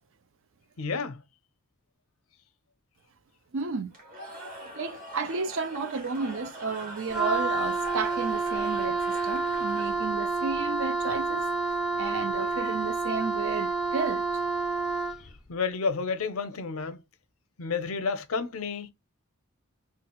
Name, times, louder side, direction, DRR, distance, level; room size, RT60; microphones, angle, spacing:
voice 1, 0.8-1.2 15.5-17.0 17.6-18.9, left 5 dB, 90° left, 0.6 m, -30 dB
voice 2, 3.5-3.9 4.3-11.5 12.0-14.3 14.8-14.9, right 4 dB, 65° right, 0.5 m, -33 dB
Cheering / Crowd, 3.9-10.3, equal, 40° right, 1.3 m, -43 dB
Wind instrument woodwind instrument, 7.1-15.3, right 4 dB, ahead, 0.4 m, -29 dB
3.1 x 2.4 x 2.9 m
head